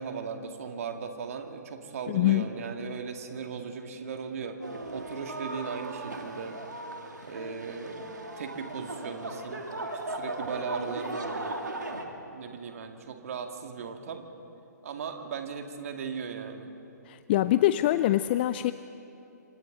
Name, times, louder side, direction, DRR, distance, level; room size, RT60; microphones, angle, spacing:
voice 1, 0.0-4.6 4.9-6.6 7.3-9.6 10.1-11.6 12.3-14.3 14.8-16.7, right 6 dB, 50° right, 5 dB, 2.1 m, -37 dB
voice 2, 2.1-2.4 17.1-18.7, left 14 dB, 35° left, 13 dB, 0.4 m, -24 dB
sound 1, 4.6-12.0, right 2 dB, 80° right, 2.4 m, -37 dB
27.5 x 25.5 x 3.9 m, 2.8 s
figure-of-eight pair, 125°, 10 cm